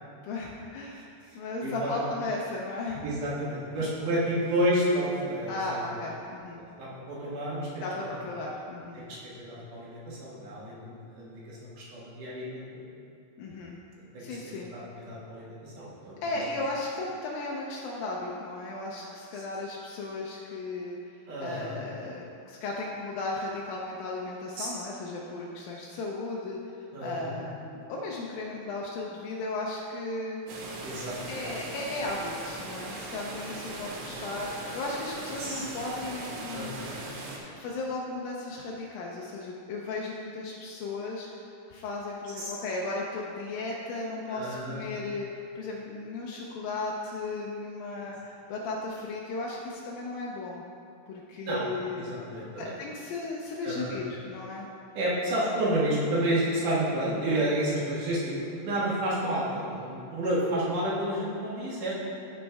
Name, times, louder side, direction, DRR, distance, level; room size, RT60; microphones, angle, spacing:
voice 1, 0.2-3.0 3.8-3.9 5.5-6.6 7.8-9.0 13.4-13.8 14.2-14.7 16.2-21.0 21.4-26.6 27.0-30.4 31.3-36.8 37.6-41.3 41.7-50.6 51.1-54.7, left 2 dB, 80° left, -3 dB, 2.1 m, -35 dB
voice 2, 1.6-2.0 3.0-5.8 6.6-7.8 8.9-9.0 9.4-12.6 14.1-16.4 21.3-21.8 24.6-24.7 26.9-27.4 30.8-31.2 35.4-35.6 36.5-37.0 44.3-44.8 51.4-51.6 52.0-52.7 53.6-54.0 54.9-61.9, right 1 dB, 60° right, -7 dB, 2.7 m, -30 dB
sound 1, 30.5-37.4, right 2 dB, 85° right, 3.3 m, -39 dB
15.0 x 5.3 x 3.4 m, 2.6 s
omnidirectional pair, 4.8 m